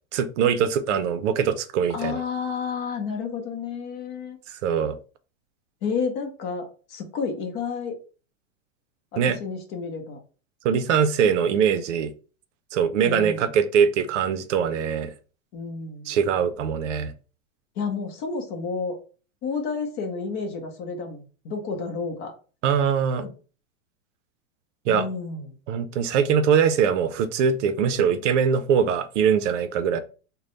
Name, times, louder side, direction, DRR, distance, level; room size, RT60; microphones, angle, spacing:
voice 1, 0.1-2.2 4.5-5.0 9.2-9.4 10.6-12.1 12.7-15.1 16.1-17.1 22.6-23.3 24.9-25.0 25.7-30.0, right 7 dB, 65° right, 0.6 m, -22 dB
voice 2, 1.9-4.4 5.8-7.9 9.1-10.2 13.0-13.5 15.5-16.1 17.8-19.0 19.4-22.3 23.2-23.3 24.9-25.6, left 5 dB, 30° left, 0.8 m, -31 dB
3.3 x 2.2 x 3.9 m
supercardioid pair, 155°, 40 cm